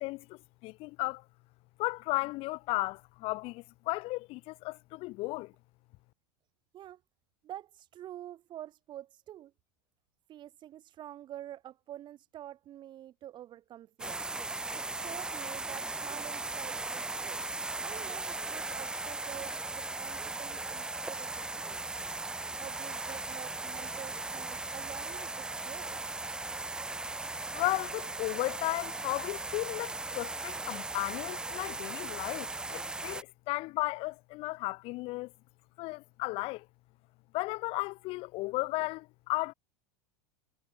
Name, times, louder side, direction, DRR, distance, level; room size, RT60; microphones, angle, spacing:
voice 1, 0.0-1.2 1.8-5.5 27.5-35.3 35.8-36.7 37.3-39.5, left 22 dB, 50° left, 0.8 m, -35 dB
voice 2, 7.4-9.5 10.3-14.3 14.7-17.4 17.8-22.1 22.6-26.2, right 12 dB, 40° right, 2.4 m, -47 dB
water fountain, 14.0-33.2, right 2 dB, 5° right, 0.3 m, -38 dB
supercardioid pair, 115°, 12 cm